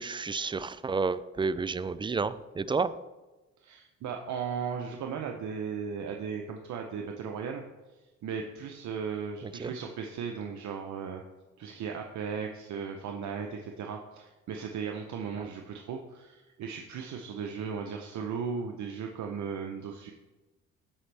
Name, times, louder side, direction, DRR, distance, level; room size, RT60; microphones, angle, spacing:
voice 1, 0.0-2.9 9.6-9.7 15.4-15.5, right 4 dB, 15° right, 15 dB, 0.3 m, -30 dB
voice 2, 3.6-7.6 8.2-11.2 11.6-20.1, right 6 dB, 70° right, 3 dB, 0.8 m, -36 dB
14.5 x 5.2 x 3.4 m, 1.1 s
cardioid pair, 90°, 30 cm